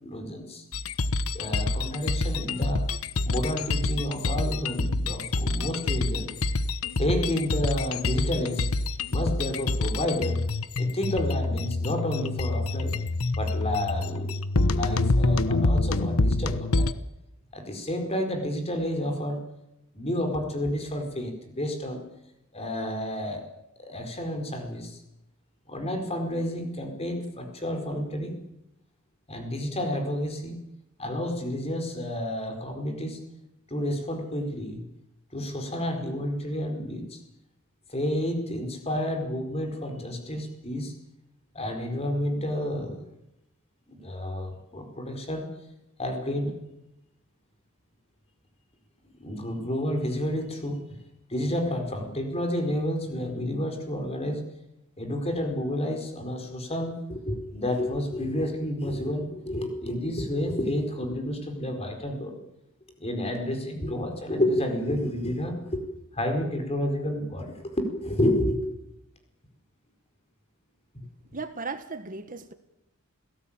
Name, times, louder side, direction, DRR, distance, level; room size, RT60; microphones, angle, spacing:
voice 1, 0.0-0.6 1.3-2.9 3.2-6.4 7.0-8.7 9.1-10.4 10.8-13.0 13.4-14.3 14.7-16.9 17.5-19.4 19.9-22.0 22.5-23.4 23.8-25.0 25.7-28.4 29.3-30.6 31.0-33.2 33.7-34.8 35.3-37.2 37.9-40.9 41.5-43.0 43.9-45.5 46.0-46.6 49.2-50.9 51.3-54.4 55.0-62.4 63.0-65.8 66.1-68.6 70.9-71.0, left 1 dB, 30° left, 5 dB, 4.6 m, -30 dB
sound 1, 0.7-16.9, left 2 dB, 85° left, 1.1 m, -27 dB
voice 2, 71.3-72.5, right 4 dB, 40° right, 9 dB, 1.5 m, -36 dB
28.0 x 17.5 x 8.9 m, 0.90 s
head